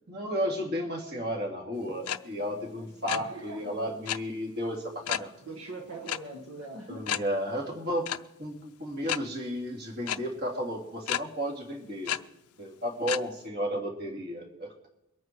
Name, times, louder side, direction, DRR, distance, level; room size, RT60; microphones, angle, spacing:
voice 1, 0.1-5.3 6.9-8.1 8.4-12.1 12.6-14.7, equal, 45° right, 0 dB, 2.9 m, -33 dB
sound 1, 2.1-2.2 2.4-2.6 2.9-3.2 4.1-4.2 5.1-5.3 6.1-6.2 6.5-6.6 7.1-7.2 8.1-8.2 9.1-9.2 10.1-10.2 11.1-11.2 12.1-12.2 13.1-13.2, left 11 dB, 85° left, 0.5 m, -30 dB
voice 2, 3.1-3.8 5.5-7.1, right 2 dB, 70° right, 1 dB, 1.7 m, -42 dB
22.5 x 9.4 x 4.6 m, 0.87 s
head